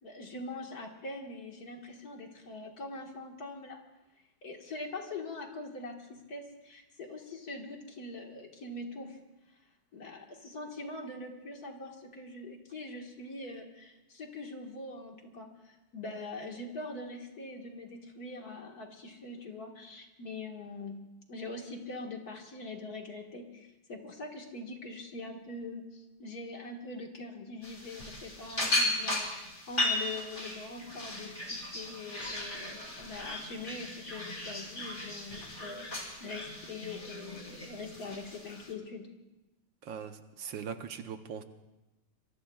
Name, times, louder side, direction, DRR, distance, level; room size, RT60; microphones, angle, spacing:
voice 1, 0.0-3.8 4.4-9.2 9.9-21.0 21.3-35.9 36.2-39.1, left 2 dB, 50° left, 2 dB, 2.1 m, -43 dB
sound 1, 27.6-38.7, left 2 dB, 25° left, 2.9 m, -36 dB
voice 2, 39.8-41.4, right 7 dB, 75° right, 8 dB, 1.6 m, -40 dB
25.0 x 23.0 x 2.4 m, 1.0 s
omnidirectional pair, 2.1 m